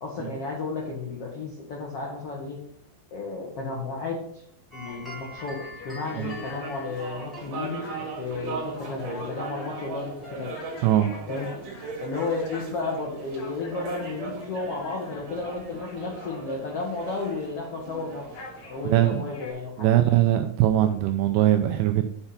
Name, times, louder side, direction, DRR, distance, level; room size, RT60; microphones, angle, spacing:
voice 1, 0.0-2.6 3.1-4.4 4.7-5.6 5.8-7.9 8.2-10.5 11.3-11.5 12.0-18.2 18.7-19.9, left 3 dB, 80° left, -2 dB, 1.3 m, -33 dB
sound 1, 4.7-12.2, left 1 dB, ahead, 2.0 m, -45 dB
sound 2, 4.8-19.5, left 3 dB, 55° left, 3.0 m, -46 dB
sound 3, 5.9-19.6, right 5 dB, 55° right, 2.9 m, -39 dB
voice 2, 10.8-11.1 18.9-19.2 19.8-22.1, right 13 dB, 85° right, 6 dB, 2.4 m, -21 dB
6.8 x 5.8 x 5.6 m, 0.67 s
omnidirectional pair, 5.2 m